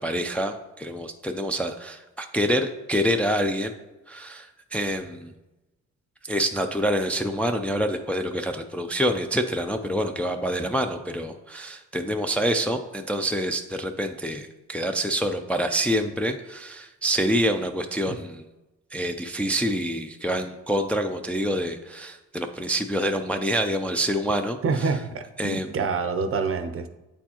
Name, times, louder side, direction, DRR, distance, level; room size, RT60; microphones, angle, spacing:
voice 1, 0.0-3.7 4.1-5.3 6.3-18.4 18.9-24.9 25.4-25.8, equal, 5° left, 5 dB, 0.4 m, -26 dB
voice 2, 24.6-26.9, right 4 dB, 45° right, 9 dB, 0.6 m, -27 dB
8.1 x 4.4 x 2.9 m, 1.0 s
cardioid pair, 90°, 30 cm